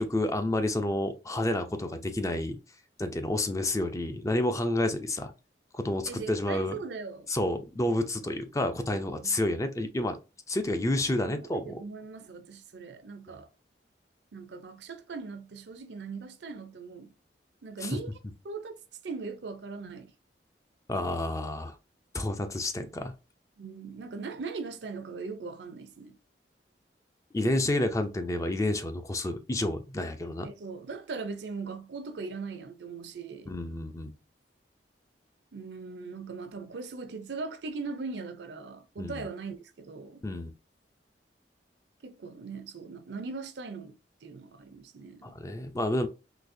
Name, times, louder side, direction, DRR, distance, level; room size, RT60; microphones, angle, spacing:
voice 1, 0.0-2.6 3.0-5.3 5.7-6.8 7.3-10.2 10.5-11.8 17.8-17.9 20.9-21.8 22.1-23.1 27.3-30.5 33.5-34.1 39.0-39.3 40.2-40.5 45.2-46.1, left 1 dB, 20° left, 0.4 m, -29 dB
voice 2, 6.0-7.3 9.2-9.4 11.3-13.5 14.3-17.1 17.6-18.1 18.4-18.8 19.0-20.1 23.6-26.1 30.4-33.5 35.5-40.3 42.0-43.9 44.2-45.3, right 4 dB, 70° right, 0.5 m, -40 dB
3.9 x 2.7 x 2.6 m
head